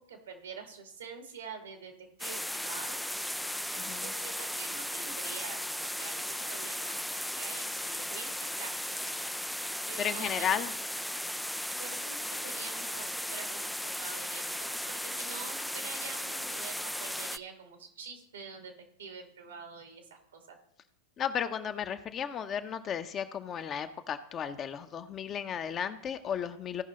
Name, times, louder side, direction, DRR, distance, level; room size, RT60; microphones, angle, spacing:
voice 1, 0.0-3.0 3.7-8.3 8.6-9.3 9.9-10.6 11.8-18.7 19.0-20.6, right 5 dB, 85° right, 4 dB, 2.3 m, -46 dB
sound 1, 2.2-17.4, left 1 dB, ahead, 0.3 m, -36 dB
voice 2, 3.8-4.1 10.0-10.7 21.2-26.8, left 8 dB, 30° left, 8 dB, 0.8 m, -34 dB
16.0 x 5.5 x 3.8 m, 0.71 s
hypercardioid pair, 105°, 0 cm